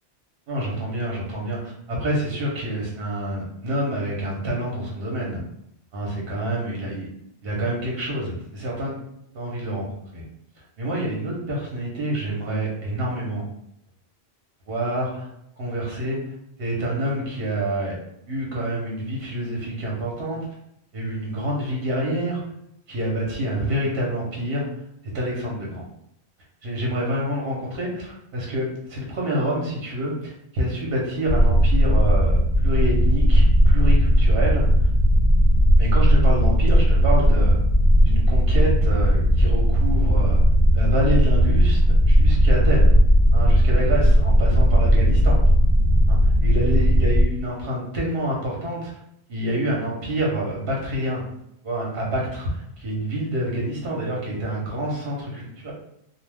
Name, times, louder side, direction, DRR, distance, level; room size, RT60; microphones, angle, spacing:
voice 1, 0.5-5.4 5.9-7.1 7.4-8.9 9.3-9.9 10.1-10.2 10.8-13.4 14.7-15.3 15.6-16.2 16.6-18.0 18.3-20.5 20.9-22.4 22.9-24.7 25.1-25.8 26.6-34.9 35.8-37.6 38.0-40.4 40.7-42.9 43.3-45.4 46.1-48.9 49.3-51.2 51.6-55.7, right 1 dB, 65° right, -3 dB, 1.0 m, -27 dB
sound 1, 31.3-47.2, equal, 55° left, 0.8 m, -17 dB
2.3 x 2.3 x 3.3 m, 0.76 s
omnidirectional pair, 1.1 m